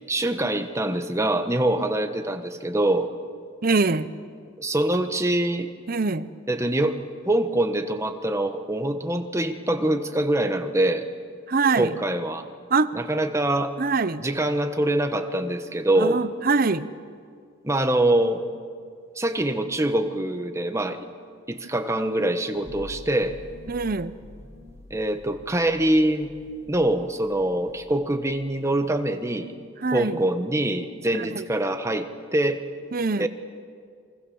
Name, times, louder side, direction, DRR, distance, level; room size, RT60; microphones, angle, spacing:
voice 1, 0.1-3.1 4.6-5.7 6.5-7.0 7.3-11.1 11.7-12.4 12.9-13.7 14.2-16.2 17.6-18.4 19.2-21.1 21.5-23.4 24.9-26.3 26.7-29.5 29.9-32.6 33.2-33.3, right 1 dB, 15° right, 7 dB, 1.2 m, -24 dB
voice 2, 3.6-4.1 5.9-6.3 11.5-12.0 12.7-12.9 13.8-14.2 16.0-16.9 23.7-24.1 29.8-30.2 31.2-31.5 32.9-33.3, right 4 dB, 45° right, 14 dB, 0.7 m, -24 dB
sound 1, 22.5-27.9 28.2-28.9, left 1 dB, 30° left, 4.2 m, -46 dB
27.5 x 24.0 x 7.1 m, 2.2 s
head